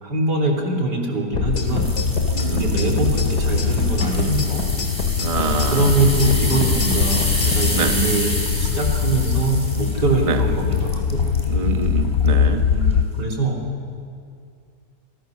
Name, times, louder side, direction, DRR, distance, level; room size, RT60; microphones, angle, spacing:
voice 1, 0.0-1.9 2.5-4.7 5.7-11.2 12.7-13.6, right 2 dB, 85° right, -1 dB, 4.1 m, -23 dB
sound 1, 1.3-13.0, left 6 dB, 50° left, 0.9 m, -22 dB
sound 2, 1.4-7.7, left 2 dB, 75° left, 3.1 m, -27 dB
sound 3, 1.6-11.5 12.0-12.3 12.8-12.9, left 1 dB, 15° left, 3.9 m, -30 dB
voice 2, 2.3-2.7 5.2-6.0 7.7-7.9 10.2-10.4 11.5-12.6, right 4 dB, 25° right, 5 dB, 1.2 m, -25 dB
28.5 x 23.0 x 6.6 m, 2.3 s
omnidirectional pair, 1.8 m